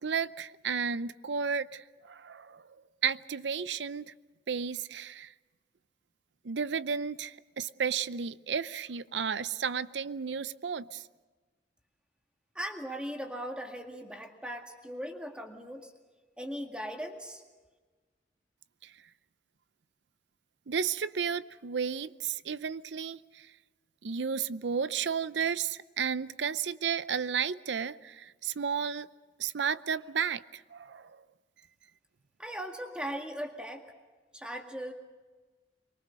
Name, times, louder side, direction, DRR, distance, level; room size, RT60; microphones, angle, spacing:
voice 1, 0.0-2.6 3.0-4.1 4.5-5.3 6.4-11.0 18.8-18.9 20.7-23.5 24.0-29.1 29.4-31.2, right 6 dB, 85° right, 0.6 m, -33 dB
voice 2, 12.6-15.9 16.4-17.4 32.4-33.9 34.3-34.9, equal, 5° right, 2.0 m, -39 dB
25.0 x 22.5 x 6.4 m
head